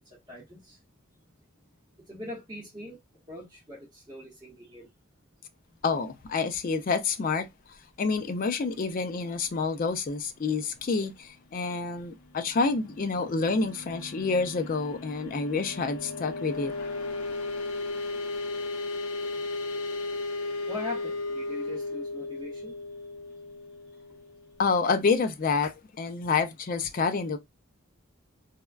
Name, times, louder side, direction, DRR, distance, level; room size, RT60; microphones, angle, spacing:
voice 1, 0.3-0.8 2.1-3.0 3.3-4.9 18.8-18.9 20.7-22.7, left 2 dB, 15° right, 0.8 m, -41 dB
voice 2, 5.8-7.5 8.0-16.9 24.6-27.4, left 4 dB, 40° left, 0.3 m, -28 dB
sound 1, 12.2-24.7, left 3 dB, 85° left, 0.7 m, -36 dB
3.4 x 2.2 x 2.3 m
head